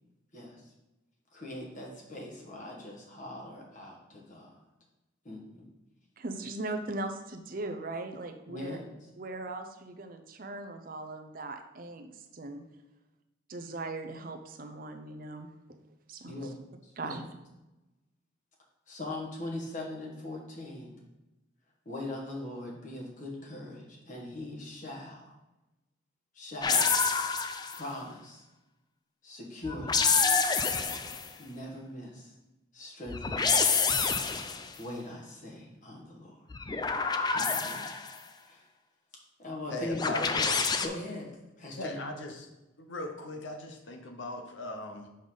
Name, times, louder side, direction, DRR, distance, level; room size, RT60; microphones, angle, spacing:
voice 1, 0.3-0.7 1.3-4.6 5.2-5.7 8.5-8.9 16.2-16.6 16.8-17.2 18.9-21.0 21.8-25.4 26.3-26.9 27.7-28.4 29.2-30.1 31.4-32.3 32.7-33.8 34.8-36.4 37.3-38.0 38.4-38.6 39.4-40.3 40.8-42.0, left 1 dB, 40° left, -2 dB, 1.5 m, -41 dB
voice 2, 6.2-8.8 9.2-12.6 13.5-15.8 16.1-16.5 17.0-17.3, right 2 dB, 45° right, 6 dB, 0.6 m, -39 dB
sound 1, 26.6-27.9 29.7-31.3 33.1-34.7 36.5-38.2 40.0-40.9, left 5 dB, 20° left, 0.3 m, -27 dB
voice 3, 39.7-40.5 41.8-42.5 42.8-45.1, left 2 dB, 65° left, 4 dB, 0.8 m, -39 dB
6.7 x 5.3 x 3.9 m, 1.0 s
head